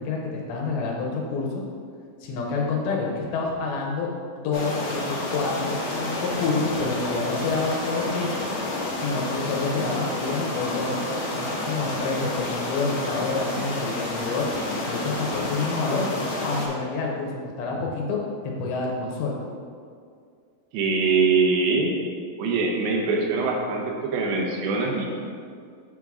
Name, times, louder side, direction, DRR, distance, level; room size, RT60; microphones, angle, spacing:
voice 1, 0.0-1.6 2.2-4.1 4.4-8.4 9.0-11.0 11.3-16.1 16.4-19.4, left 3 dB, 85° left, -1 dB, 2.8 m, -28 dB
sound 1, 4.5-16.7, left 2 dB, 70° left, 1.3 m, -29 dB
voice 2, 20.7-21.9 22.4-25.1, right 4 dB, 80° right, -1 dB, 2.7 m, -23 dB
6.6 x 3.6 x 6.2 m, 2.2 s
omnidirectional pair, 4.3 m